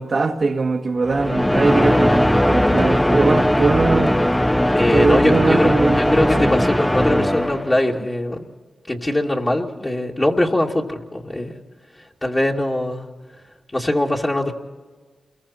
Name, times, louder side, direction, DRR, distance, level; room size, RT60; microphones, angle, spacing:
voice 1, 0.0-4.2 4.9-6.5, right 3 dB, 60° right, 1.9 m, -21 dB
sound 1, 1.0-7.9, left 1 dB, 10° left, 0.8 m, -18 dB
voice 2, 4.7-8.5 8.9-11.5 12.2-13.1 13.7-14.5, left 1 dB, 25° left, 2.5 m, -21 dB
28.5 x 22.0 x 4.4 m
supercardioid pair, 45°, 0 cm